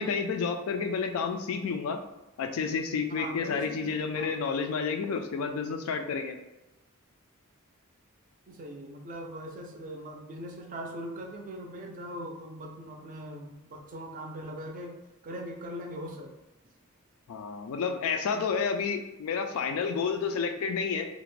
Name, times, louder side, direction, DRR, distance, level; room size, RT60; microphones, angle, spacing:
voice 1, 0.0-2.0 2.4-6.4 17.3-21.1, left 5 dB, 70° left, 6 dB, 0.3 m, -30 dB
voice 2, 3.1-4.4 8.5-14.9 15.2-16.3, equal, 40° right, 1 dB, 0.4 m, -40 dB
2.4 x 2.1 x 3.1 m, 1.0 s
head